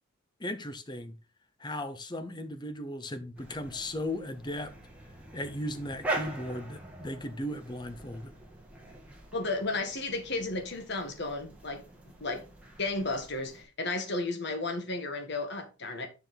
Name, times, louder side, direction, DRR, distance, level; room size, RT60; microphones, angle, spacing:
voice 1, 0.4-1.1 1.6-4.7 5.3-8.3, left 1 dB, 20° left, 0.8 m, -36 dB
sound 1, 3.4-13.6, right 2 dB, 5° right, 1.9 m, -43 dB
voice 2, 9.3-11.8 12.2-12.4 12.8-16.1, left 2 dB, 50° left, 1.6 m, -33 dB
6.9 x 5.9 x 4.0 m
head